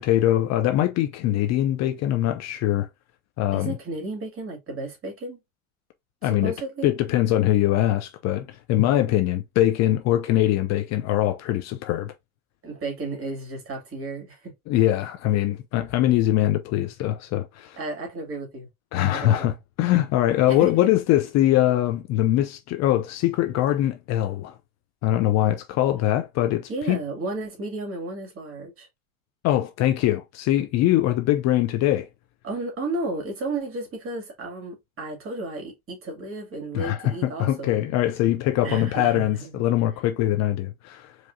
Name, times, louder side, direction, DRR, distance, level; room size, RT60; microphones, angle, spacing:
voice 1, 0.0-2.9 3.4-3.8 6.2-6.5 6.8-12.1 14.7-17.8 18.9-24.5 25.0-27.0 29.4-32.1 36.7-41.1, left 13 dB, 40° left, 0.6 m, -22 dB
voice 2, 3.5-5.4 6.2-6.9 12.6-14.5 17.8-18.7 19.1-19.6 20.5-20.9 26.7-28.9 32.4-37.8 38.6-39.6, right 2 dB, 30° right, 2.4 m, -33 dB
4.8 x 3.0 x 2.6 m
hypercardioid pair, 100°, 43 cm